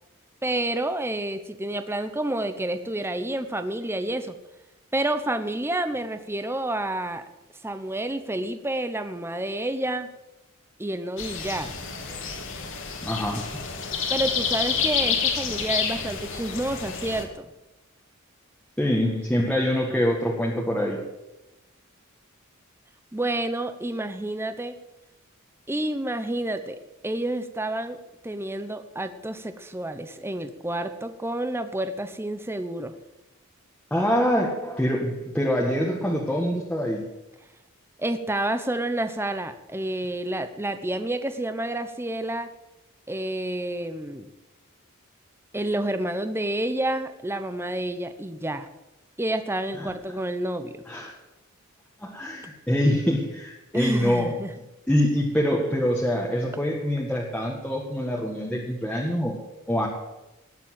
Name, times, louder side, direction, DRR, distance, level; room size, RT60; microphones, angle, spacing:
voice 1, 0.4-4.3 4.9-7.2 7.6-10.1 10.8-11.7 14.1-17.4 23.1-24.7 25.7-26.8 27.0-28.0 28.2-32.9 38.0-42.5 43.1-44.3 45.5-48.7 49.2-50.8 53.7-54.5, right 1 dB, 10° right, 9 dB, 1.0 m, -29 dB
sound 1, 11.2-17.2, left 6 dB, 65° left, 2.5 m, -28 dB
voice 2, 13.0-13.4 18.8-21.0 33.9-37.0 49.8-49.9 50.9-51.1 52.0-54.4 54.9-59.4 59.7-59.9, equal, 5° left, -3 dB, 1.8 m, -25 dB
19.0 x 7.5 x 7.7 m, 0.98 s
head